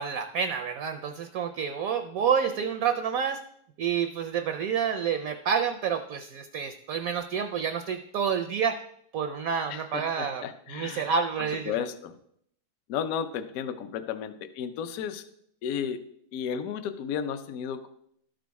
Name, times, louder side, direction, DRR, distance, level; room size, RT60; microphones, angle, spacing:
voice 1, 0.0-3.4 3.8-8.8 9.1-11.8, right 7 dB, 70° right, 8 dB, 0.8 m, -29 dB
voice 2, 9.7-11.1 11.7-12.1 12.9-15.2 15.6-16.0 16.3-17.9, left 8 dB, 65° left, 11 dB, 1.0 m, -33 dB
12.0 x 5.1 x 4.7 m, 0.70 s
omnidirectional pair, 1.9 m